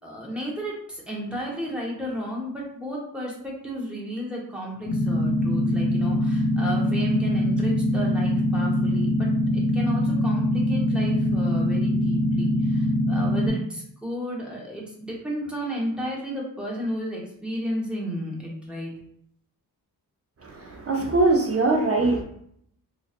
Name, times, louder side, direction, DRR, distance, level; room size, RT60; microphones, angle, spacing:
voice 1, 0.0-9.3 9.5-18.9, equal, 5° right, -4 dB, 1.1 m, -33 dB
sound 1, 4.8-13.5, left 1 dB, 50° left, 1.2 m, -23 dB
voice 2, 20.4-22.2, right 2 dB, 40° right, 0 dB, 0.6 m, -22 dB
3.9 x 2.9 x 2.5 m, 0.69 s
wide cardioid pair, 100°, 38 cm